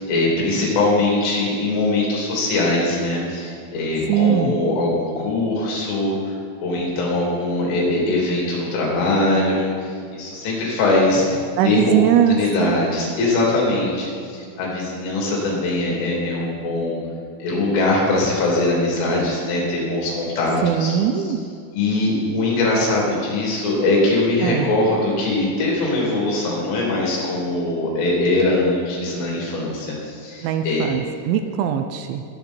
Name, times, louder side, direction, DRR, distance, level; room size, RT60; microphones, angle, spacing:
voice 1, 0.0-6.1 6.6-12.0 12.3-17.0 17.4-20.9 21.7-30.9, left 2 dB, 80° left, -4 dB, 5.7 m, -21 dB
voice 2, 4.1-4.6 11.6-12.8 20.6-21.4 24.4-24.7 30.4-32.2, right 9 dB, 80° right, 7 dB, 2.8 m, -20 dB
21.0 x 9.1 x 4.5 m, 2.3 s
omnidirectional pair, 5.7 m